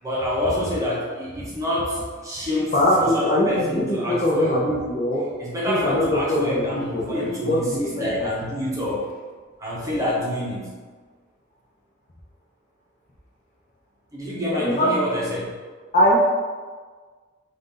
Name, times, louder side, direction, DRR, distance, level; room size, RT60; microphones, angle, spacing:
voice 1, 0.0-4.6 5.4-9.0 9.6-10.7 14.1-15.5, left 1 dB, 15° right, -6 dB, 0.9 m, -27 dB
voice 2, 2.7-5.3 5.7-8.3 14.4-14.9 15.9-16.2, left 1 dB, 35° left, -4 dB, 0.7 m, -22 dB
4.2 x 2.6 x 3.8 m, 1.5 s
head